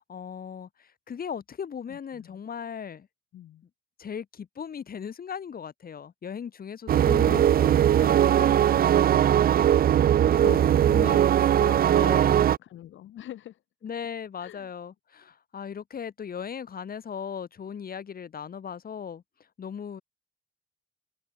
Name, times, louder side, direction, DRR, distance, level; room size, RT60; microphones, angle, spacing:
voice 1, 0.0-3.1 4.0-9.5 10.0-11.6 11.9-12.5 13.8-19.2 19.6-20.0, left 7 dB, 50° left, 3.4 m, -38 dB
voice 2, 1.9-2.4 3.3-3.6 7.0-7.7 10.4-11.1 11.6-12.3 12.6-13.6 14.4-14.7, left 12 dB, 75° left, 2.4 m, -42 dB
sound 1, 6.9-12.6, right 10 dB, 50° right, 0.5 m, -20 dB
cardioid pair, 90°, 20 cm